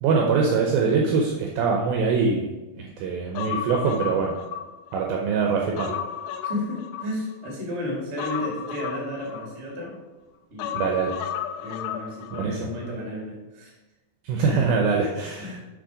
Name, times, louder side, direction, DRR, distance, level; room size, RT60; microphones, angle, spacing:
voice 1, 0.0-2.5 2.8-4.3 4.9-5.9 10.7-11.1 12.4-12.7 14.2-15.6, right 5 dB, 80° right, 0 dB, 2.2 m, -23 dB
Human voice, 3.4-5.1 5.5-7.5 8.2-9.9 10.6-12.5 12.8-12.9, left 9 dB, 85° left, 2.6 m, -33 dB
voice 2, 6.4-10.0 10.5-10.9 11.6-13.7 14.3-14.8 15.4-15.6, left 1 dB, 30° right, -2 dB, 1.3 m, -33 dB
6.5 x 6.4 x 4.9 m, 1.1 s
omnidirectional pair, 4.9 m